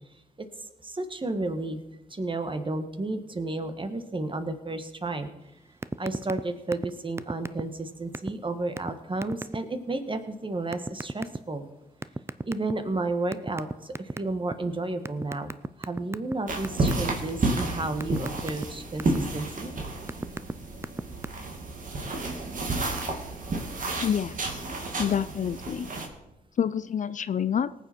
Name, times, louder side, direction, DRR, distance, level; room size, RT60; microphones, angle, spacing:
voice 1, 0.8-1.8 2.1-5.3 6.0-11.6 12.4-19.7, right 2 dB, 30° right, 8 dB, 1.6 m, -32 dB
sound 1, 5.8-6.4 6.7-6.9 7.2-7.8 8.1-8.3 8.8-8.9 9.2-9.6 10.7-11.4 12.0-12.9 13.3-14.5 15.1-16.3 16.6-17.1 17.5-19.2 19.8-20.5 20.8-21.3, right 2 dB, 15° right, 0.5 m, -32 dB
sound 2, 16.5-26.1, right 2 dB, 55° right, 2.4 m, -31 dB
voice 2, 24.0-24.6 25.0-25.9 26.6-27.7, left 8 dB, 50° left, 15 dB, 0.5 m, -27 dB
18.5 x 7.5 x 4.6 m, 0.93 s
supercardioid pair, 50°, 16 cm